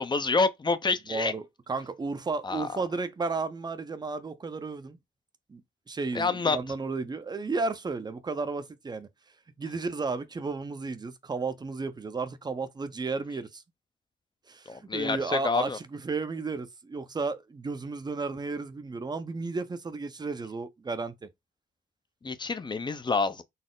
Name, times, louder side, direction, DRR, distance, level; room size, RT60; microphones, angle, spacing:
voice 1, 0.0-1.3 2.4-2.8 6.1-6.6 14.7-15.8 22.2-23.4, left 4 dB, 25° left, 0.5 m, -27 dB
voice 2, 1.1-1.4 1.7-5.0 5.5-5.6 5.9-9.1 9.6-13.6 14.5-21.3, right 4 dB, 20° right, 0.6 m, -33 dB
4.1 x 2.0 x 3.7 m
cardioid pair, 90°, 20 cm